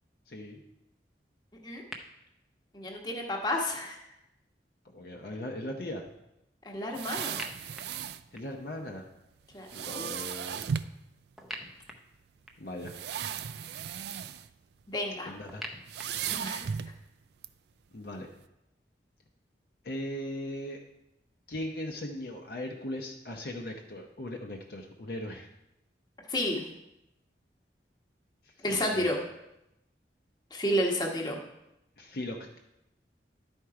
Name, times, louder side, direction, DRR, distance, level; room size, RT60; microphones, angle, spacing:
voice 1, 0.3-0.6 4.8-6.0 8.3-9.0 9.7-10.7 12.6-12.9 15.3-15.6 17.9-18.3 19.8-20.8 21.5-25.5 28.4-29.1 32.0-32.6, left 1 dB, 55° left, 1 dB, 0.7 m, -38 dB
sound 1, 1.9-2.0 7.3-8.7 11.4-12.8 15.5-16.9, equal, ahead, 0.6 m, -44 dB
voice 2, 2.7-4.0 6.6-7.4 9.5-10.1 14.9-15.3 16.4-16.6 26.3-26.6 28.6-29.2 30.5-31.4, left 1 dB, 25° left, 0 dB, 1.2 m, -31 dB
sound 2, 6.9-8.2 9.7-11.0 11.9-12.0 12.8-14.5 14.8-15.0 15.9-17.0 17.4-17.5, right 8 dB, 65° right, 0.3 m, -36 dB
11.5 x 4.5 x 4.8 m, 0.87 s
head